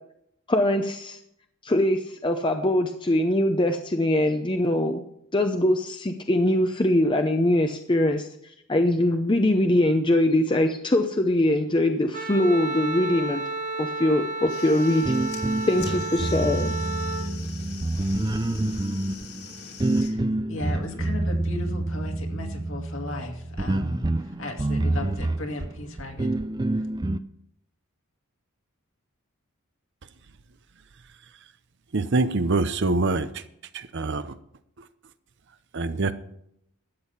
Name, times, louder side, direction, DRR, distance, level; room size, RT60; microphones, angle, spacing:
voice 1, 0.5-1.2 1.6-5.0 5.3-8.3 8.7-13.4 13.8-15.1 15.7-16.8, left 1 dB, 20° left, 5 dB, 0.7 m, -22 dB
Wind instrument woodwind instrument, 12.1-17.3, right 2 dB, 35° right, 1.2 m, -32 dB
sound 1, 14.4-20.1, left 6 dB, 85° left, 3.1 m, -43 dB
sound 2, 15.1-27.2, right 2 dB, 20° right, 0.4 m, -27 dB
voice 2, 20.0-26.3 26.7-26.9, left 2 dB, 60° left, 3 dB, 2.3 m, -36 dB
voice 3, 31.9-33.3 33.7-34.3 35.7-36.1, right 3 dB, 55° right, 12 dB, 0.7 m, -24 dB
13.0 x 8.6 x 5.7 m, 0.74 s
head